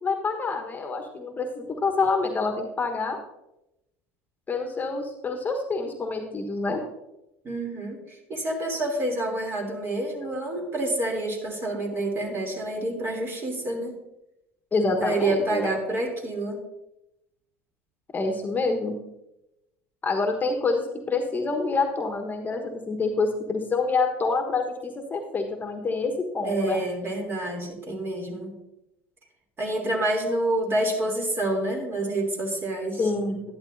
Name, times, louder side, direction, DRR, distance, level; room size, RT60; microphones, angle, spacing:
voice 1, 0.0-3.2 4.5-6.8 14.7-15.7 18.1-19.0 20.0-26.8 33.0-33.4, left 3 dB, 25° left, 4 dB, 1.3 m, -27 dB
voice 2, 7.4-14.0 15.0-16.6 26.4-28.5 29.6-33.0, right 1 dB, 35° right, 1 dB, 3.1 m, -28 dB
11.5 x 11.0 x 2.7 m, 0.89 s
hypercardioid pair, 70°, 7 cm